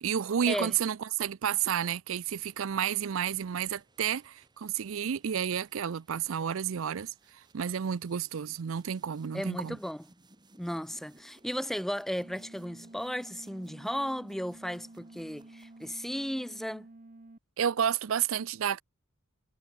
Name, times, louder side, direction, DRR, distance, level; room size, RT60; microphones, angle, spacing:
voice 1, 0.0-9.8 17.6-18.8, right 8 dB, 65° right, 0.5 m, -31 dB
sound 1, 2.1-16.4, right 2 dB, 20° right, 5.3 m, -64 dB
voice 2, 9.3-10.1 10.6-16.9, equal, ahead, 1.0 m, -35 dB
sound 2, 12.2-17.4, right 2 dB, 40° right, 0.9 m, -51 dB
head